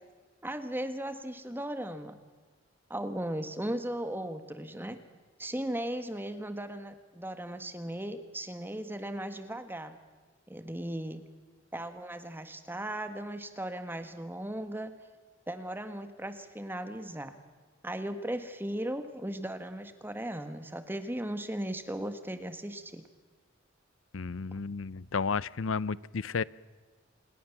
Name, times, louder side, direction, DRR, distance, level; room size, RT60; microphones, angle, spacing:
voice 1, 0.4-2.2 2.9-5.0 5.4-10.0 10.5-11.2 11.7-14.9 15.5-17.3 17.8-23.0, right 1 dB, 10° right, 9 dB, 1.6 m, -37 dB
voice 2, 24.1-26.4, left 5 dB, 85° left, 21 dB, 0.6 m, -32 dB
27.0 x 21.0 x 7.2 m, 1.4 s
head